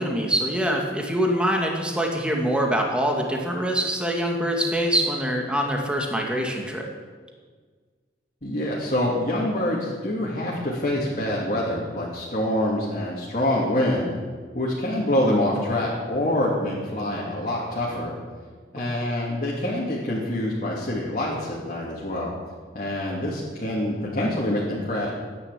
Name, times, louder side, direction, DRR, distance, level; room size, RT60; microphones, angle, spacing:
voice 1, 0.0-6.9, equal, 5° right, 1 dB, 2.1 m, -24 dB
voice 2, 8.4-14.1 14.5-18.1 18.7-22.3 22.7-25.1, left 1 dB, 45° left, -6 dB, 2.9 m, -26 dB
13.0 x 10.5 x 8.4 m, 1.5 s
head